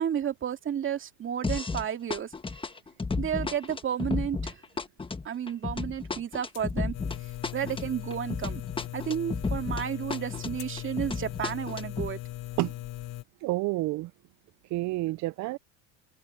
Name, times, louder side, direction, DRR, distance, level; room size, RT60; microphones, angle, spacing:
voice 1, 0.0-2.3 3.2-4.5 5.2-7.0 7.5-8.6 8.9-12.2, right 9 dB, 35° right, 2.3 m, -32 dB
sound 1, 1.4-1.8 2.1-9.8 10.1-12.1, left 4 dB, 15° left, 1.4 m, -33 dB
sound 2, 6.3-13.1, left 27 dB, 75° left, 7.2 m, -58 dB
sound 3, 6.9-13.2, left 17 dB, 45° left, 1.2 m, -39 dB
voice 2, 13.4-14.1 14.7-15.6, right 19 dB, 50° right, 0.7 m, -29 dB
hypercardioid pair, 95°, 37 cm